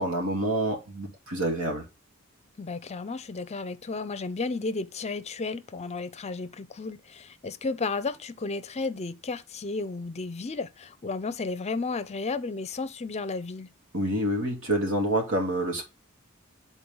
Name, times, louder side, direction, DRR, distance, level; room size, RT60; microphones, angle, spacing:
voice 1, 0.0-1.8 13.9-15.8, right 1 dB, 75° right, 2.4 m, -27 dB
voice 2, 2.6-13.7, left 3 dB, 30° left, 0.6 m, -33 dB
8.6 x 4.1 x 3.6 m
head